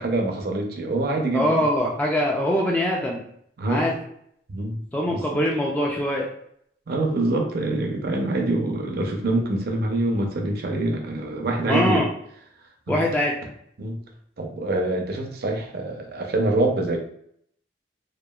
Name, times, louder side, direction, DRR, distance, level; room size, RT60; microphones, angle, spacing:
voice 1, 0.0-1.6 3.6-3.9 4.5-4.8 5.1-5.4 6.9-12.0 12.9-13.0 13.8-14.0 14.4-17.0, right 2 dB, 60° right, 2 dB, 0.5 m, -25 dB
voice 2, 1.3-3.2 3.7-3.9 4.9-6.3 11.7-12.1 12.9-13.4, equal, 10° left, -2 dB, 0.3 m, -23 dB
2.9 x 2.3 x 2.2 m, 0.69 s
head